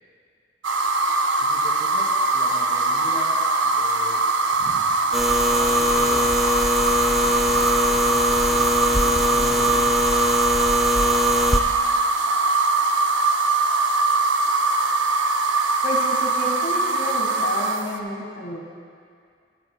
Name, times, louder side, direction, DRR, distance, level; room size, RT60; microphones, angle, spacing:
sound 1, 0.6-18.0, right 3 dB, 90° right, 0.6 m, -22 dB
voice 1, 1.4-3.4 3.6-4.8 5.2-10.0, equal, 20° right, -7 dB, 2.8 m, -40 dB
sound 2, 5.1-11.6, left 1 dB, ahead, 0.4 m, -22 dB
voice 2, 15.8-18.6, left 1 dB, 70° left, -1 dB, 1.6 m, -30 dB
14.5 x 12.0 x 2.2 m, 2.3 s
head